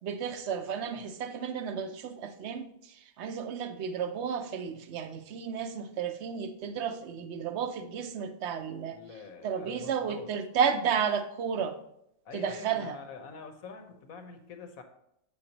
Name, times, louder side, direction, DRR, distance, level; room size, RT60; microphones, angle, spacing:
voice 1, 0.0-9.0 9.4-11.7 12.3-13.0, right 7 dB, 60° right, 8 dB, 0.8 m, -32 dB
voice 2, 8.9-10.3 12.2-14.8, left 5 dB, 75° left, 5 dB, 1.4 m, -45 dB
8.0 x 6.5 x 2.9 m, 0.78 s
omnidirectional pair, 1.5 m